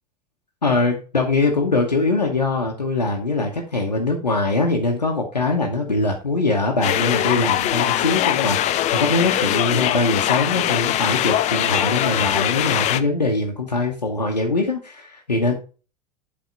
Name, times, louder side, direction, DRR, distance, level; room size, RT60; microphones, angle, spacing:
voice 1, 0.6-15.5, left 3 dB, 85° left, 1 dB, 1.0 m, -22 dB
sound 1, 6.8-13.0, left 12 dB, 35° left, 0.5 m, -21 dB
7.9 x 3.5 x 5.1 m, 0.35 s
figure-of-eight pair, 75°, 21 cm